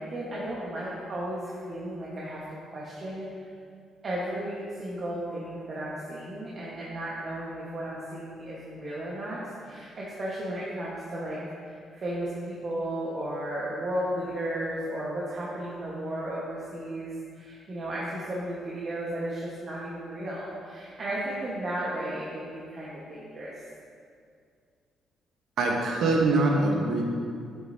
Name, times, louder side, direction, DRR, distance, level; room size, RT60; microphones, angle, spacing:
voice 1, 0.0-3.5 4.0-11.4 11.6-23.5, right 1 dB, 45° right, -6 dB, 1.4 m, -34 dB
voice 2, 25.6-27.0, right 2 dB, 75° right, 0 dB, 1.1 m, -23 dB
8.3 x 7.9 x 2.8 m, 2.2 s
cardioid pair, 90°, 0 cm